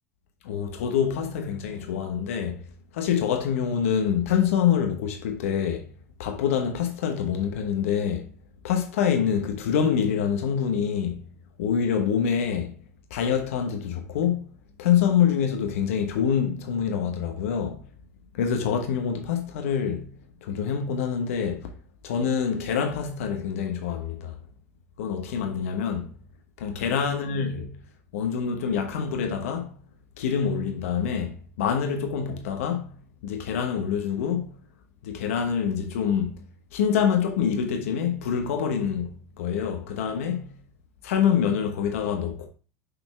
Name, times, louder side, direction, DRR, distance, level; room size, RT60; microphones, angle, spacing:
voice 1, 0.4-2.7 2.9-5.9 6.2-8.3 8.6-11.2 11.6-12.7 13.1-14.5 14.8-17.8 18.3-20.1 20.4-21.7 22.0-24.4 25.0-26.1 26.6-27.8 28.1-29.7 30.2-32.9 33.2-34.5 35.0-36.4 36.7-39.1 39.4-40.5 41.0-42.5, left 7 dB, 70° left, 1.1 m, -26 dB
6.7 x 4.2 x 3.5 m
hypercardioid pair, 85°, 8 cm